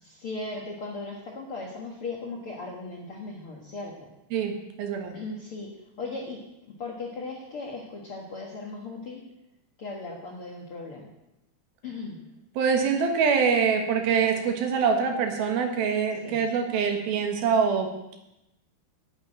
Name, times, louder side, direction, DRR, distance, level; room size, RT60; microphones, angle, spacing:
voice 1, 0.0-4.1 5.1-5.7 6.0-9.2 9.8-11.1 11.8-12.2 16.2-16.4, left 3 dB, 50° left, -2 dB, 1.7 m, -37 dB
voice 2, 4.8-5.2 12.6-18.2, right 6 dB, 70° right, 4 dB, 3.1 m, -24 dB
9.6 x 8.6 x 8.9 m, 0.90 s
omnidirectional pair, 4.6 m